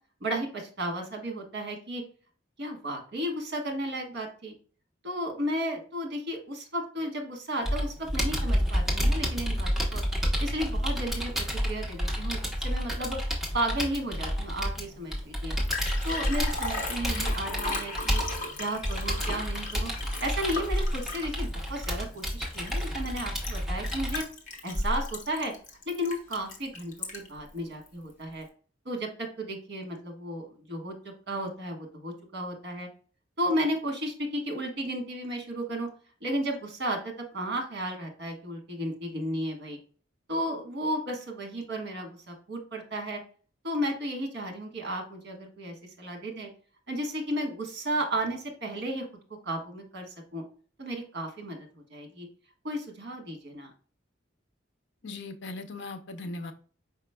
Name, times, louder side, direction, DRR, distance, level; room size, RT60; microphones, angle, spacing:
voice 1, 0.2-2.0 2.6-4.5 5.0-10.0 10.4-13.2 13.5-15.5 16.0-18.2 18.6-19.9 20.2-24.2 24.6-25.5 25.9-28.5 28.8-30.9 31.3-32.9 33.4-35.9 36.2-39.8 40.3-43.2 43.6-46.5 46.9-49.1 49.4-50.4 50.8-52.3 52.6-53.7, right 1 dB, 60° right, 3 dB, 1.4 m, -33 dB
Computer keyboard, 7.7-24.2, equal, ahead, 1.1 m, -30 dB
Liquid, 15.2-15.3 15.5-27.4 27.9-28.0, left 1 dB, 40° left, 1.0 m, -34 dB
voice 2, 55.0-56.5, left 2 dB, 65° left, 8 dB, 0.6 m, -38 dB
5.1 x 4.8 x 2.2 m, 0.41 s
head